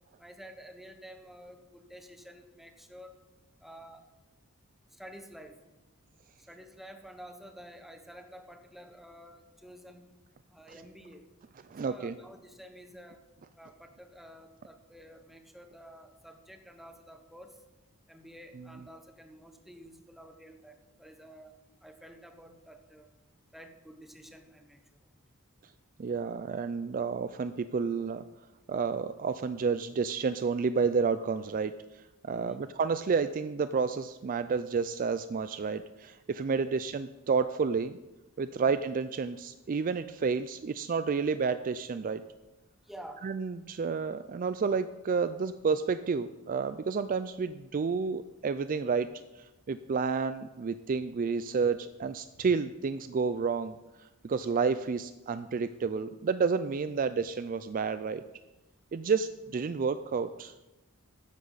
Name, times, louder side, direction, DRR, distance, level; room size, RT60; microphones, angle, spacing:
voice 1, 0.2-3.1 3.6-4.0 5.0-5.6 6.5-10.0 10.5-11.2 11.8-13.2 13.6-17.6 18.1-21.5 21.8-23.1 23.5-25.2 32.3-32.6 36.6-36.7 42.8-43.2, equal, ahead, 5 dB, 1.1 m, -50 dB
voice 2, 11.7-12.2 26.0-28.2 28.7-38.0 38.4-42.2 43.2-49.1 49.4-58.2 58.9-60.5, right 5 dB, 40° right, 12 dB, 0.4 m, -30 dB
13.5 x 10.0 x 4.0 m, 1.0 s
head